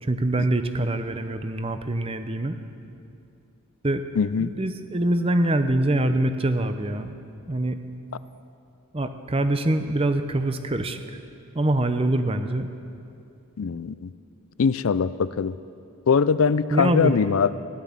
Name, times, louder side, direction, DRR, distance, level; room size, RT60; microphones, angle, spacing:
voice 1, 0.0-2.6 3.8-4.0 4.4-7.1 7.5-7.8 8.9-11.0 11.6-12.7 16.7-17.1, right 1 dB, 25° right, 9 dB, 0.7 m, -24 dB
voice 2, 4.2-4.5 13.6-14.1 14.6-15.5 16.1-17.6, left 5 dB, 65° left, 16 dB, 0.4 m, -22 dB
15.5 x 11.5 x 7.3 m, 2.6 s
head